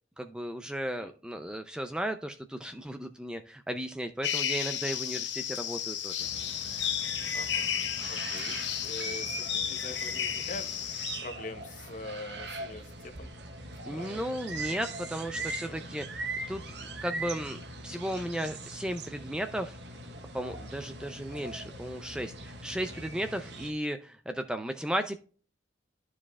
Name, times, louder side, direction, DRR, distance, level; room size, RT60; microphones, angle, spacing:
voice 1, 0.2-6.3 13.9-16.6 17.0-19.8 20.3-25.2, equal, 5° right, 7 dB, 0.4 m, -35 dB
sound 1, 4.2-11.2, left 9 dB, 65° left, 1.1 m, -33 dB
sound 2, 6.2-23.7, right 2 dB, 60° right, 1.0 m, -41 dB
voice 2, 7.3-7.7 8.1-8.5 8.8-10.7 11.2-13.3 13.9-14.2 15.6-15.9 22.9-23.0, left 2 dB, 40° left, 7 dB, 0.8 m, -43 dB
12.0 x 4.8 x 2.3 m, 0.39 s
head